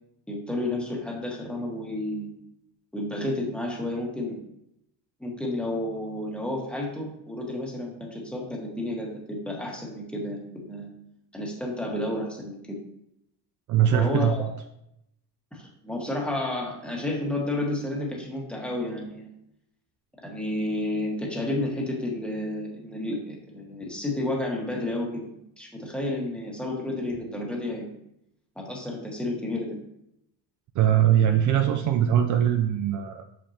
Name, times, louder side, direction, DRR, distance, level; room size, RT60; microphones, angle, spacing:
voice 1, 0.3-2.3 2.9-4.4 5.2-10.9 11.3-12.6 13.9-14.5 15.5-19.3 20.2-27.9 28.5-29.8, left 1 dB, 5° left, -3 dB, 1.5 m, -31 dB
voice 2, 13.7-14.5 30.8-33.2, right 10 dB, 50° right, 6 dB, 0.5 m, -21 dB
6.4 x 6.0 x 2.8 m, 0.79 s
cardioid pair, 145°, 39 cm